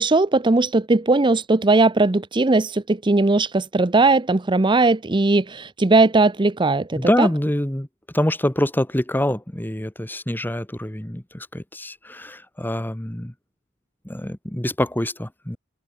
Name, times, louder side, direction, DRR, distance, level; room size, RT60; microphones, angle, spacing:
voice 1, 0.0-7.3, right 3 dB, 25° right, 0.7 m, -18 dB
voice 2, 7.0-7.9 8.1-13.3 14.0-15.6, left 1 dB, 10° left, 1.3 m, -25 dB
head